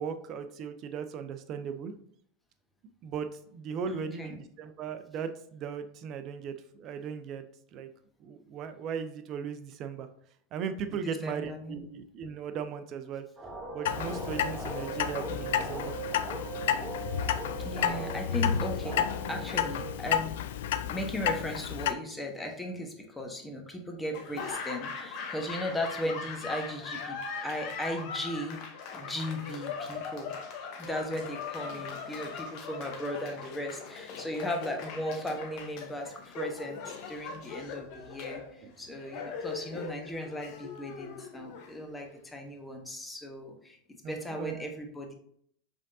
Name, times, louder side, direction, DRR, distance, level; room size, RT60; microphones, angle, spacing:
voice 1, 0.0-1.9 3.0-3.3 3.5-7.4 7.7-7.9 8.2-10.1 10.5-13.2 13.7-15.9 44.0-44.7, right 6 dB, 45° right, 9 dB, 0.5 m, -37 dB
voice 2, 3.9-4.4 10.9-11.8 17.6-20.4 20.8-28.6 28.9-30.3 30.8-43.8 44.1-45.1, left 1 dB, 10° left, 2 dB, 1.0 m, -37 dB
sound 1, 13.4-19.9, right 3 dB, 20° right, 0.9 m, -39 dB
Clock, 13.8-21.9, left 9 dB, 75° left, 0.3 m, -31 dB
Laughter / Applause, 24.1-42.2, left 5 dB, 55° left, 0.8 m, -40 dB
5.1 x 3.5 x 2.7 m, 0.66 s
hypercardioid pair, 100°, 0 cm